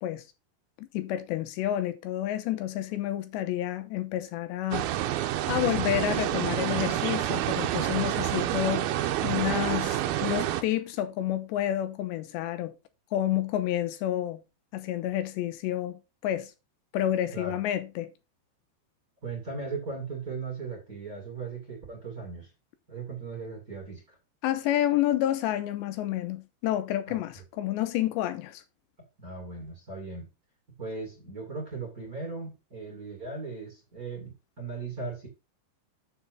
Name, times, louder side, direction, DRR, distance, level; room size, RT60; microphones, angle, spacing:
voice 1, 0.8-4.9 5.5-8.9 9.2-12.7 13.1-14.4 14.7-16.5 16.9-18.1 24.4-28.6, left 12 dB, 85° left, 3.0 m, -29 dB
sound 1, 4.7-10.6, right 13 dB, 80° right, 2.3 m, -28 dB
voice 2, 19.2-22.5 22.9-24.2 27.1-27.2 29.2-30.3 30.8-35.3, right 4 dB, 25° right, 2.4 m, -38 dB
7.0 x 6.8 x 5.4 m
omnidirectional pair, 5.1 m